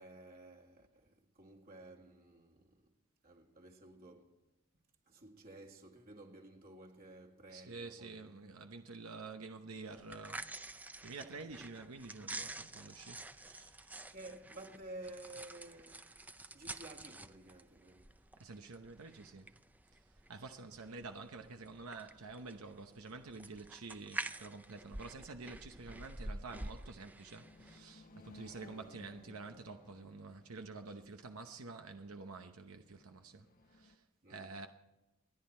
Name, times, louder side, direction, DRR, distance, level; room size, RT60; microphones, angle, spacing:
voice 1, 0.0-2.9 3.2-4.5 5.1-8.6 14.1-16.1 16.5-18.3 34.2-34.7, right 2 dB, 45° right, 2.1 m, -53 dB
voice 2, 7.5-14.1 18.4-19.5 19.9-20.0 20.3-34.0 34.3-34.7, right 3 dB, 75° right, 0.9 m, -49 dB
sound 1, 10.0-27.8, right 2 dB, 5° right, 0.5 m, -49 dB
sound 2, 27.4-34.0, left 2 dB, 40° left, 1.0 m, -61 dB
28.5 x 10.5 x 4.4 m
head